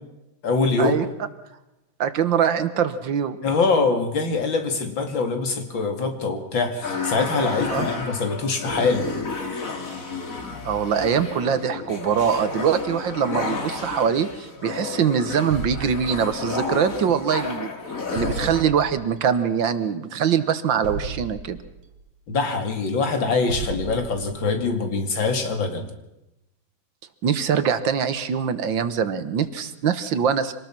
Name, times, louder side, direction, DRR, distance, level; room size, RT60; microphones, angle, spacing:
voice 1, 0.4-1.0 3.4-9.1 22.3-25.9, left 4 dB, 70° left, 6 dB, 3.1 m, -23 dB
voice 2, 2.0-3.4 7.7-7.9 10.6-17.7 18.1-21.6 27.2-30.5, right 7 dB, 70° right, 12 dB, 1.8 m, -23 dB
sound 1, 6.8-18.6, left 4 dB, 40° left, 2.9 m, -31 dB
sound 2, 15.5-16.6 18.2-19.1 20.8-21.9 23.5-24.5, right 4 dB, 85° right, 2.4 m, -33 dB
25.5 x 19.5 x 6.0 m, 0.92 s
omnidirectional pair, 2.2 m